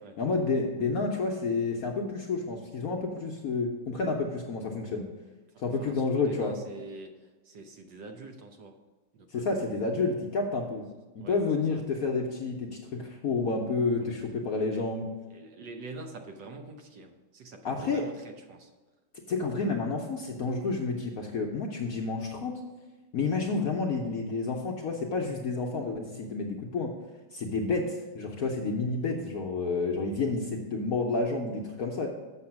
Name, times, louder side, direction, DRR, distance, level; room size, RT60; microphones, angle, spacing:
voice 1, 0.2-5.0 5.6-6.5 9.3-10.9 11.2-15.1 17.6-18.0 19.3-22.6 23.1-26.9 27.3-32.1, left 3 dB, 60° left, 1 dB, 1.0 m, -30 dB
voice 2, 5.5-8.7 9.1-10.0 11.2-11.4 11.7-11.8 14.0-14.2 14.7-14.9 15.3-18.7, right 3 dB, 65° right, 4 dB, 1.4 m, -46 dB
7.0 x 6.6 x 5.8 m, 1.2 s
omnidirectional pair, 2.2 m